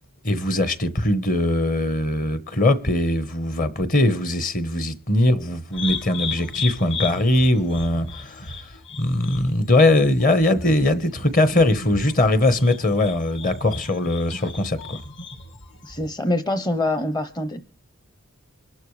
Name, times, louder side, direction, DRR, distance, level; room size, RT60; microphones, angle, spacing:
voice 1, 0.2-8.7 9.0-15.0, left 1 dB, 35° left, 1.1 m, -21 dB
sound 1, 5.7-16.1, left 4 dB, 55° left, 1.5 m, -35 dB
voice 2, 15.8-17.6, left 1 dB, 20° left, 0.7 m, -25 dB
25.0 x 12.0 x 3.3 m
head